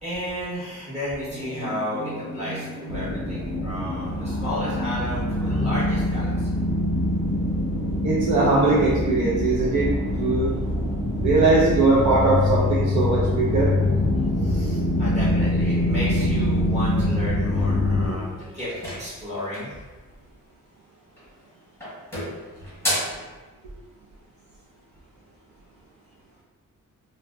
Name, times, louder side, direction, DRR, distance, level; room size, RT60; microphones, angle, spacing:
voice 1, 0.0-6.5 14.4-18.7 19.0-19.7, left 1 dB, 20° right, -10 dB, 1.1 m, -32 dB
sound 1, 1.3-16.9, equal, 45° right, 0.9 m, -35 dB
sound 2, 2.9-18.1, left 1 dB, 30° left, 0.4 m, -24 dB
voice 2, 8.0-9.9 10.2-10.5 11.2-13.7, right 3 dB, 60° right, -5 dB, 0.5 m, -20 dB
sound 3, 18.6-19.8 21.1-21.5 21.8-23.2, equal, 5° left, 0.9 m, -31 dB
2.6 x 2.0 x 3.3 m, 1.3 s
wide cardioid pair, 160°, 33 cm